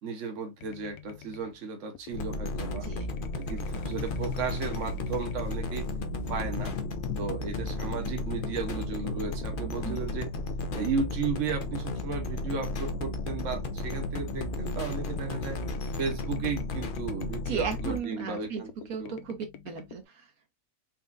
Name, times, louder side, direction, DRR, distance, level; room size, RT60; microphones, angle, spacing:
voice 1, 0.0-2.9 3.4-5.9 6.3-6.8 7.2-10.3 10.7-15.6 16.0-18.7 19.0-19.2, right 5 dB, 60° right, 1.3 m, -34 dB
sound 1, 0.6-1.6 1.9-20.0, left 8 dB, 85° left, 1.2 m, -48 dB
sound 2, 2.1-18.0, left 2 dB, 45° left, 0.7 m, -34 dB
sound 3, 3.5-10.3, left 10 dB, 65° left, 1.1 m, -42 dB
voice 2, 17.5-20.3, right 6 dB, 75° right, 1.4 m, -36 dB
4.3 x 3.5 x 2.5 m
omnidirectional pair, 1.5 m